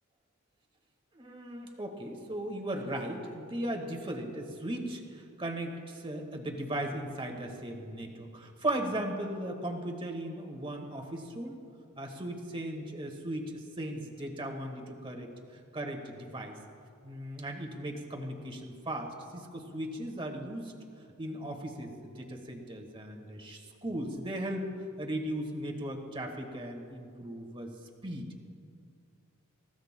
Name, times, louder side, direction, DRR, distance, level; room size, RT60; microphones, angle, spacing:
voice 1, 1.1-11.6 12.0-16.6 17.0-20.7 21.2-24.7 25.0-27.7 28.0-28.3, right 1 dB, 25° right, 2 dB, 1.6 m, -37 dB
27.5 x 15.5 x 2.2 m, 2.3 s
head